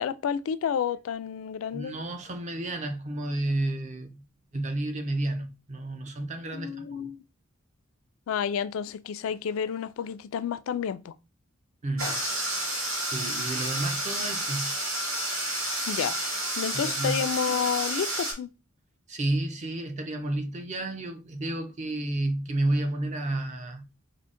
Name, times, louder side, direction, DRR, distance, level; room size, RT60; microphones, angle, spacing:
voice 1, 0.0-1.9 6.5-7.2 8.3-11.1 15.9-16.2 16.6-18.5, left 7 dB, 85° left, 0.3 m, -30 dB
voice 2, 1.7-4.2 4.5-7.1 11.8-12.2 12.6-14.7 16.7-17.2 19.1-23.8, right 2 dB, 35° right, 0.6 m, -31 dB
sound 1, 12.0-18.3, right 1 dB, 90° right, 1.4 m, -30 dB
3.7 x 2.1 x 3.6 m
head